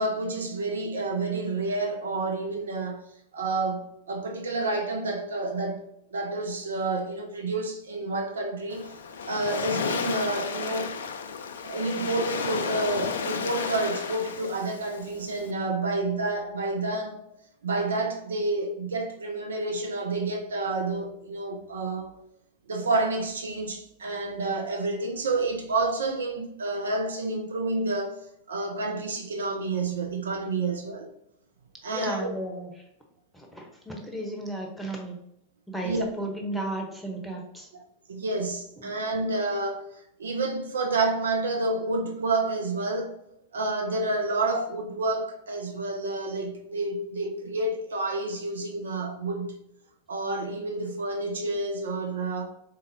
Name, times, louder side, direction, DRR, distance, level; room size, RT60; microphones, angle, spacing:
voice 1, 0.0-3.0 3.3-9.0 9.3-10.9 11.6-17.2 17.6-22.1 22.7-28.2 28.5-31.1 31.8-32.3 35.8-36.0 37.7-37.8 38.1-43.2 43.5-49.6 50.1-52.5, right 2 dB, 70° right, 0.5 m, -29 dB
Waves surf, 8.7-15.5, left 6 dB, 65° left, 0.3 m, -33 dB
voice 2, 31.9-32.7 33.3-35.2 35.7-37.7 38.8-39.0, right 1 dB, 5° left, 0.9 m, -34 dB
3.9 x 3.9 x 2.7 m
figure-of-eight pair, 90°, 0 cm